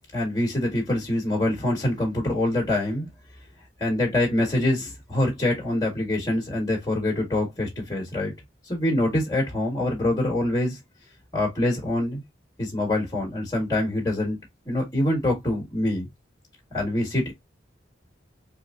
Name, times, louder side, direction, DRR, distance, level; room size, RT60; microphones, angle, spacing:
voice 1, 0.1-3.1 3.8-8.3 8.7-10.8 11.3-12.2 12.6-14.4 14.6-16.1 16.7-17.3, left 1 dB, 20° left, 1.6 m, -25 dB
4.4 x 2.7 x 2.4 m
head